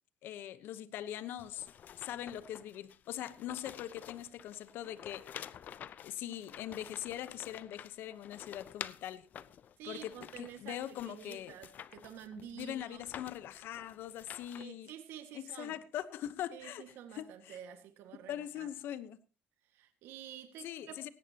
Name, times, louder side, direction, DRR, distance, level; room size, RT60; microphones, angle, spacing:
voice 1, 0.2-1.7 2.0-5.2 6.0-9.3 9.9-11.6 12.5-14.9 15.3-17.6 18.3-19.2 20.6-21.1, left 11 dB, 70° left, 14 dB, 1.0 m, -42 dB
sound 1, 1.4-14.6, left 9 dB, 50° left, 0.7 m, -50 dB
voice 2, 9.8-13.0 14.6-15.8 16.5-18.7 19.6-21.1, right 9 dB, 80° right, 7 dB, 1.8 m, -49 dB
18.0 x 16.5 x 2.9 m, 0.35 s
cardioid pair, 130°, 4 cm